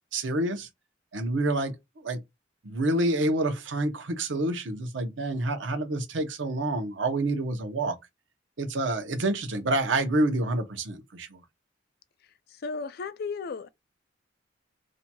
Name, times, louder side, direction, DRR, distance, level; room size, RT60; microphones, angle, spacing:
voice 1, 0.1-0.7 1.1-2.2 2.6-8.0 8.6-11.4, right 2 dB, 85° right, 0.7 m, -28 dB
voice 2, 12.5-13.7, left 4 dB, 55° left, 0.3 m, -34 dB
2.8 x 2.6 x 2.2 m
head